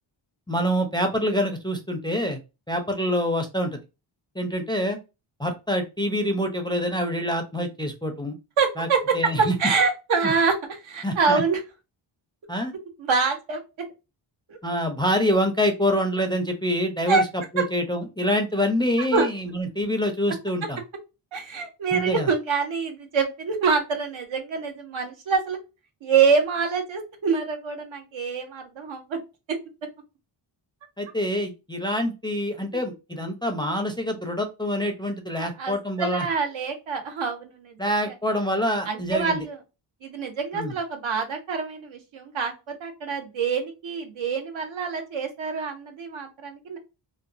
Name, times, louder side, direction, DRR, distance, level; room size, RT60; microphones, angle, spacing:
voice 1, 0.5-2.4 2.7-3.8 4.4-5.0 5.4-8.4 8.8-8.9 9.1-9.5 11.0-11.4 12.5-12.7 14.6-17.2 17.5-20.8 21.9-22.3 31.0-36.3 37.8-39.4 40.5-40.7, equal, 10° left, 4 dB, 0.4 m, -26 dB
voice 2, 8.6-9.0 9.4-10.5 10.8-11.6 13.0-13.6 14.5-14.6 17.1-17.2 19.1-19.3 21.3-25.6 26.0-29.2 29.5-29.6 35.4-35.7 36.0-37.8 38.1-38.2 38.9-39.6 40.0-46.8, right 5 dB, 70° right, 4 dB, 0.9 m, -25 dB
2.8 x 2.1 x 2.4 m, 0.27 s
wide cardioid pair, 90°, 49 cm